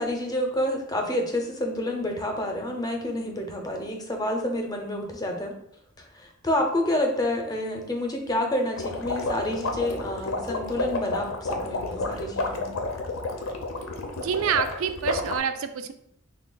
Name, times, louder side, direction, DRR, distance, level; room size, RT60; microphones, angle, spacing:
voice 1, 0.0-5.5 6.0-12.8, left 1 dB, 20° left, 2 dB, 0.5 m, -28 dB
sound 1, 8.8-15.4, left 2 dB, 75° left, 0.5 m, -30 dB
voice 2, 14.1-15.9, right 7 dB, 80° right, 9 dB, 0.3 m, -27 dB
3.3 x 2.2 x 3.7 m, 0.72 s
head